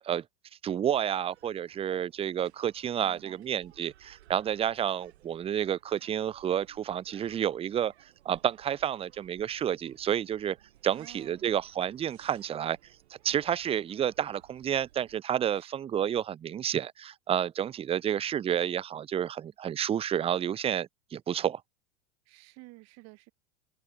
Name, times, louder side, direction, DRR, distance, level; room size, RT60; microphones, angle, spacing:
voice 1, 0.6-7.9 8.2-10.6 10.8-12.8 13.1-21.6, right 9 dB, 15° right, 0.5 m, -30 dB
sound 1, 0.9-15.2, right 14 dB, 70° right, 6.1 m, -60 dB
voice 2, 3.0-3.5 10.9-11.5 15.5-15.7 22.3-23.3, right 24 dB, 50° right, 3.9 m, -52 dB
hypercardioid pair, 90°, 34 cm